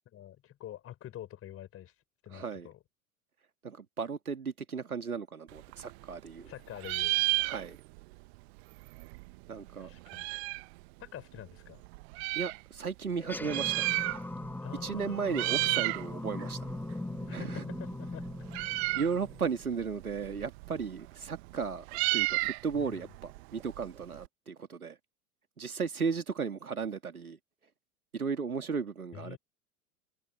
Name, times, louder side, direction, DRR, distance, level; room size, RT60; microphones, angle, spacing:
voice 1, 0.1-1.9 2.2-2.8 6.5-7.2 9.8-10.3 11.0-11.8 14.6-15.4 17.3-18.3 22.8-23.1 29.1-29.4, left 12 dB, 30° left, 4.8 m, -46 dB
voice 2, 2.3-2.7 3.6-6.5 7.4-7.8 9.5-9.9 12.3-13.8 14.8-16.6 17.3-17.6 18.9-25.0 25.6-27.4 28.1-29.4, right 5 dB, 85° right, 2.5 m, -35 dB
Meow, 5.5-6.5 6.8-8.0 8.3-8.4 8.6-10.7 11.4-12.6 13.3-14.5 14.8-15.0 15.3-16.0 16.4-24.3, right 26 dB, 45° right, 1.2 m, -33 dB
sound 1, 13.1-19.9, left 2 dB, 5° left, 1.5 m, -40 dB
figure-of-eight pair, 90°, 42 cm